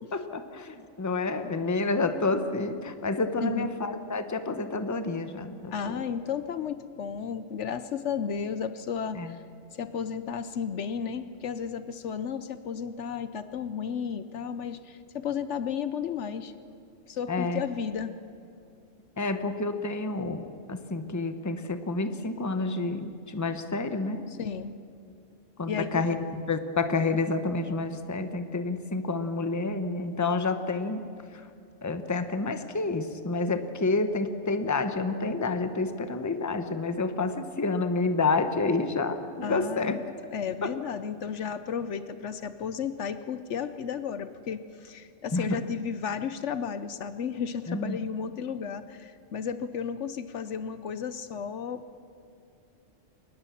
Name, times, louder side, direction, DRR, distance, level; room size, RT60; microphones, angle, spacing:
voice 1, 0.1-6.0 9.1-9.3 17.3-17.6 19.2-24.3 25.6-31.1 31.3-31.4 31.8-40.0 40.6-40.7 45.3-45.5 47.7-48.0, left 3 dB, 15° left, 9 dB, 0.9 m, -29 dB
voice 2, 5.7-9.4 9.7-16.5 17.1-18.2 24.3-24.8 25.7-26.1 39.4-40.0 40.3-51.8, left 7 dB, 70° left, 12 dB, 1.0 m, -33 dB
23.0 x 19.5 x 7.1 m, 2.4 s
omnidirectional pair, 1.3 m